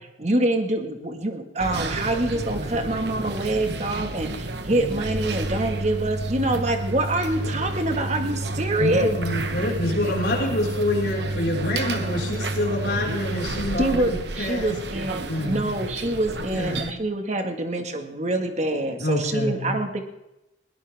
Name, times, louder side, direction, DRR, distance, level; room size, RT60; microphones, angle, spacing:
voice 1, 0.2-9.1 13.8-20.0, right 1 dB, 40° right, 5 dB, 2.0 m, -25 dB
sound 1, 1.6-16.9, right 2 dB, 65° right, 1.3 m, -30 dB
voice 2, 8.8-14.7 15.3-15.7 16.4-17.0 19.0-19.8, left 1 dB, 65° left, -2 dB, 5.3 m, -27 dB
20.5 x 18.0 x 3.6 m, 0.91 s
head